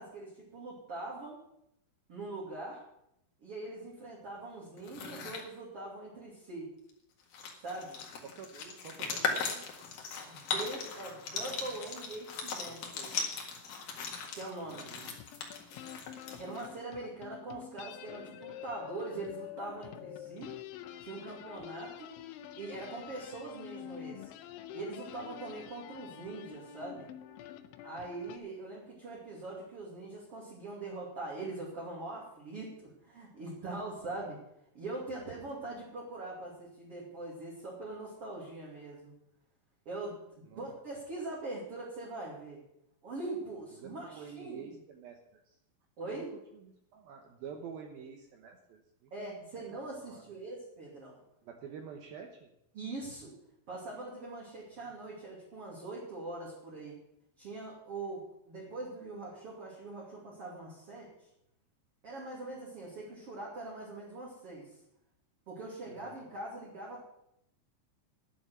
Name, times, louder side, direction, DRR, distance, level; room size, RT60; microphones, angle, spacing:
voice 1, 0.0-1.4 2.1-2.8 3.4-6.7 7.6-8.0 10.3-13.3 14.3-14.9 16.3-20.5 21.0-22.1 22.6-24.3 24.7-27.1 27.8-34.4 34.7-39.2 39.8-40.2 40.5-42.6 43.0-44.7 46.0-46.4 49.1-51.2 52.7-53.3 53.7-57.0 57.4-61.1 62.0-64.7 65.5-67.0, right 2 dB, 35° right, -5 dB, 2.8 m, -42 dB
sound 1, 4.8-5.5 6.9-7.0 7.2-16.8, left 5 dB, 55° left, 3.0 m, -38 dB
voice 2, 8.2-9.7 14.7-15.2 40.5-40.7 43.8-45.6 46.1-46.2 46.6-50.2 51.4-52.5 65.9-66.2, right 7 dB, 75° right, 4 dB, 2.2 m, -49 dB
sound 2, 15.1-28.4, left 11 dB, 85° left, 3.1 m, -47 dB
11.0 x 7.2 x 9.5 m, 0.79 s
omnidirectional pair, 5.6 m